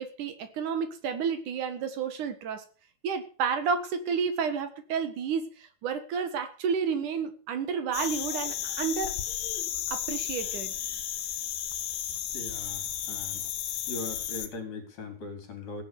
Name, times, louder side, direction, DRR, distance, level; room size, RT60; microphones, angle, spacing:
voice 1, 0.0-2.6 3.0-9.1 9.9-10.7, right 6 dB, 60° right, 9 dB, 2.8 m, -31 dB
sound 1, 7.9-14.5, left 10 dB, 80° left, 3.3 m, -33 dB
voice 2, 12.3-13.4 13.9-15.8, left 3 dB, 50° left, 6 dB, 4.8 m, -40 dB
16.5 x 10.5 x 6.9 m, 0.40 s
omnidirectional pair, 4.3 m